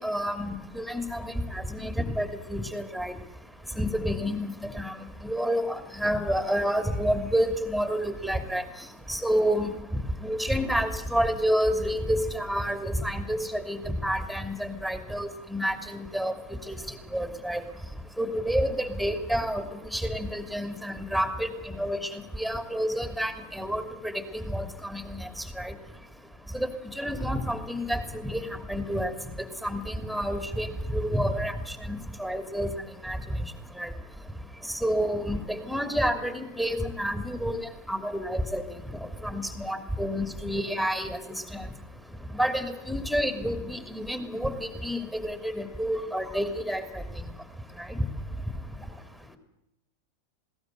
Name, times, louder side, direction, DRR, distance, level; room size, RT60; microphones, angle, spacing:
voice 1, 0.0-3.1 3.8-4.5 4.8-4.9 5.2-8.6 9.1-9.7 10.2-16.3 16.7-16.8 17.1-17.6 18.2-19.6 19.9-21.5 21.8-22.1 22.4-25.2 25.6-25.7 26.5-26.7 27.0-28.4 28.7-29.1 29.6-31.5 31.9-32.7 33.0-33.2 33.8-33.9 34.8-37.6 37.9-38.6 39.2-41.2 41.5-41.6 42.3-46.8 47.9-48.0, equal, ahead, 8 dB, 2.9 m, -29 dB
20.5 x 17.5 x 8.1 m, 0.87 s
figure-of-eight pair, 90°, 0 cm